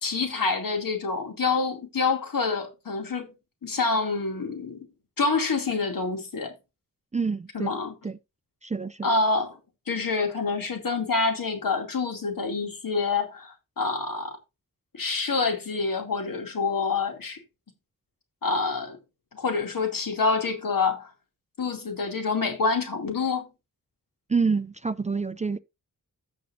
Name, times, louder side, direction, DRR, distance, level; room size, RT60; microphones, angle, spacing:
voice 1, 0.0-3.3 3.6-4.8 5.2-6.5 7.5-7.9 9.0-9.6 9.9-14.3 14.9-17.4 18.4-19.0 19.3-21.1 21.6-23.5, left 4 dB, 75° left, 2.7 m, -27 dB
voice 2, 7.1-7.7 8.0-8.2 8.6-9.1 24.3-25.6, right 5 dB, 20° right, 0.4 m, -27 dB
15.0 x 6.2 x 2.6 m
wide cardioid pair, 95°, 34 cm